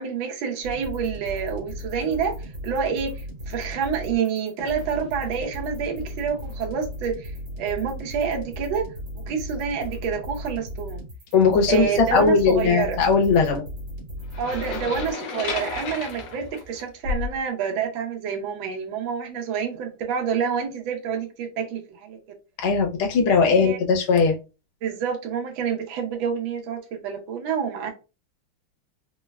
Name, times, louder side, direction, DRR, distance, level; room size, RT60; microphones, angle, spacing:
voice 1, 0.0-11.0 11.7-13.0 14.4-22.2 23.4-23.8 24.8-27.9, right 6 dB, 75° right, 1.4 m, -28 dB
sound 1, 0.6-15.1, equal, 55° right, 1.5 m, -36 dB
voice 2, 11.3-13.6 22.6-24.4, left 5 dB, 85° left, 1.6 m, -19 dB
sound 2, 14.3-17.4, left 5 dB, 65° left, 1.3 m, -32 dB
3.9 x 2.1 x 2.3 m
omnidirectional pair, 2.3 m